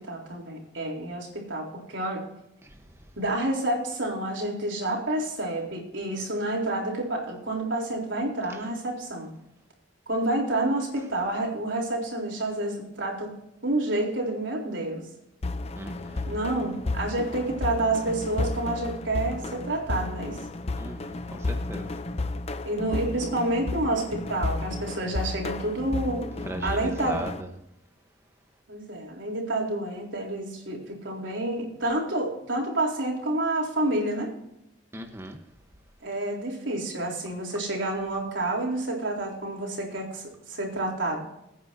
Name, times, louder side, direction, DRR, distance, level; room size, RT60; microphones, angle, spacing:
voice 1, 0.1-2.3 3.2-9.3 10.1-13.3 13.6-15.0 16.3-20.4 22.6-26.3 26.6-27.2 28.7-34.3 36.0-41.2, right 1 dB, 90° right, 0 dB, 3.7 m, -29 dB
sound 1, 15.4-27.4, left 2 dB, 35° left, 0.6 m, -33 dB
voice 2, 15.8-16.2 20.7-21.9 26.4-27.5 34.9-35.4, right 1 dB, 15° right, 4 dB, 1.0 m, -38 dB
21.5 x 9.4 x 2.8 m, 0.85 s
head